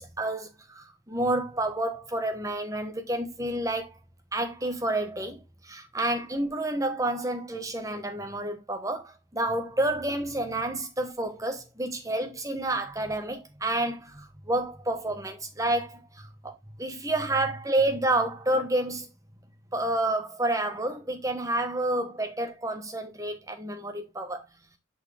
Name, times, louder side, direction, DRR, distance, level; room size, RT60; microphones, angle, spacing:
voice 1, 0.0-3.9 4.3-19.1 19.7-24.4, right 1 dB, 15° right, 1.2 m, -29 dB
6.6 x 5.4 x 3.4 m
head